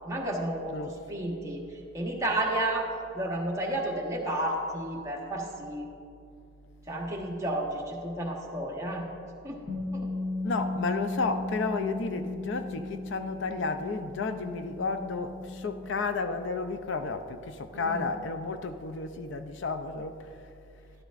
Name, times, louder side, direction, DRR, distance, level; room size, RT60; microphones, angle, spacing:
voice 1, 0.0-1.6 1.9-5.9 6.9-9.1 9.4-9.6 9.9-10.1 17.7-18.1, right 1 dB, 15° right, 1.2 m, -32 dB
Bass guitar, 9.7-15.9, left 2 dB, 15° left, 1.1 m, -36 dB
voice 2, 10.4-20.4, left 4 dB, 65° left, 0.5 m, -32 dB
12.0 x 11.5 x 2.5 m
head